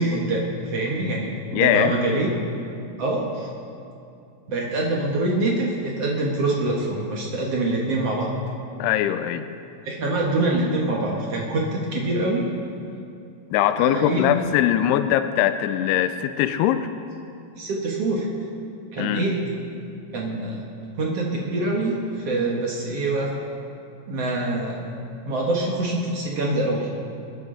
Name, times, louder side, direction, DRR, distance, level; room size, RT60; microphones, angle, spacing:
voice 1, 0.0-2.3 3.0-3.5 4.5-8.4 9.8-12.5 13.8-14.3 17.6-18.3 18.9-19.4 20.1-20.7 21.0-23.4 24.1-24.8 25.2-26.9, right 2 dB, 85° right, -2 dB, 1.3 m, -25 dB
voice 2, 1.5-1.9 8.8-9.5 13.5-16.9 19.0-19.3, left 11 dB, 85° left, 10 dB, 2.3 m, -21 dB
28.0 x 10.5 x 3.8 m, 2.6 s
omnidirectional pair, 5.2 m